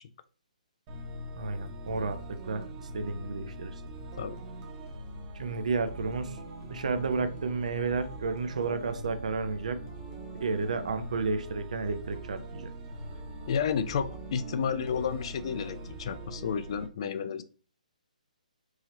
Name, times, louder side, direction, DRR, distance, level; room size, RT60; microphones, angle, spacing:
sound 1, 0.9-16.9, right 1 dB, 25° right, 1.0 m, -42 dB
voice 1, 1.3-3.8 5.3-6.4 6.7-9.8 10.4-12.7, right 4 dB, 55° right, 10 dB, 0.7 m, -32 dB
voice 2, 13.5-17.4, left 7 dB, 40° left, 12 dB, 0.4 m, -31 dB
4.7 x 2.9 x 2.8 m, 0.39 s
figure-of-eight pair, 135°, 5 cm